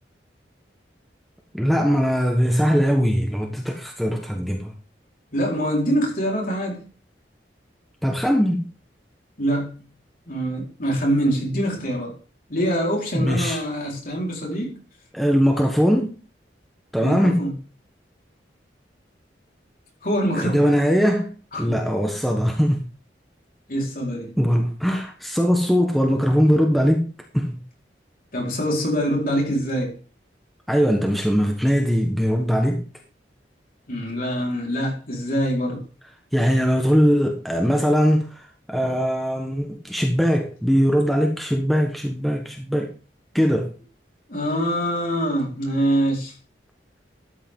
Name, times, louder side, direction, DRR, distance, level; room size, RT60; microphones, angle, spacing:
voice 1, 1.5-4.7 8.0-8.6 13.1-13.6 15.1-16.2 16.9-17.4 20.4-22.9 24.4-27.1 27.3-27.6 30.7-32.8 36.3-42.9 43.3-43.7, equal, ahead, 1.3 m, -21 dB
voice 2, 5.3-6.8 9.4-9.9 10.3-12.2 12.5-14.8 17.0-17.5 20.0-20.8 21.5-21.7 23.7-24.3 28.3-30.0 33.9-35.8 44.3-46.3, equal, 50° left, 4.5 m, -24 dB
13.0 x 8.7 x 3.8 m
head